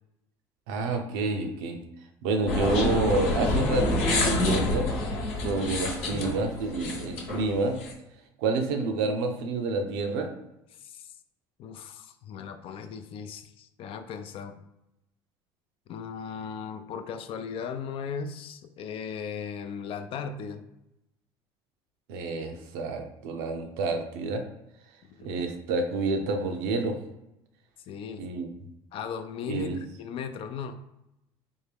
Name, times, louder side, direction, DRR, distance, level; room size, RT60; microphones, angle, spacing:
voice 1, 0.7-1.8 2.2-4.9 5.4-7.8 8.4-10.3 22.1-24.4 25.2-27.0 28.2-28.5 29.5-29.8, right 3 dB, 80° right, 4 dB, 0.6 m, -28 dB
sound 1, 2.5-7.9, left 2 dB, 70° left, 1.0 m, -28 dB
voice 2, 10.8-11.1 11.6-14.6 15.9-20.7 25.1-25.4 27.9-28.2 28.9-29.7 30.0-30.8, left 6 dB, 50° left, 8 dB, 0.4 m, -37 dB
3.5 x 2.1 x 3.4 m, 0.87 s
hypercardioid pair, 80°, 12 cm